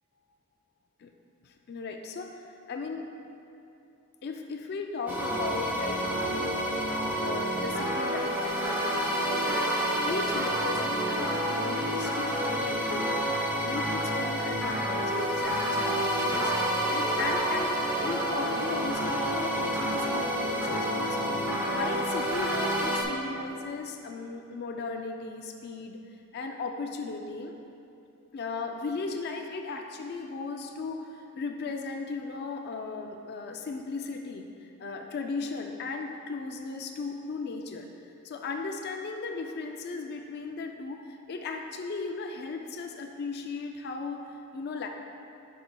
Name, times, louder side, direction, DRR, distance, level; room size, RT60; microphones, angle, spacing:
voice 1, 1.4-3.1 4.2-9.7 10.0-13.3 13.6-16.5 16.9-21.3 21.7-26.0 26.3-27.6 28.3-44.9, left 4 dB, 45° left, 3 dB, 0.3 m, -36 dB
sound 1, 5.1-23.0, equal, 10° right, 0.6 m, -29 dB
9.9 x 5.3 x 2.2 m, 2.8 s
head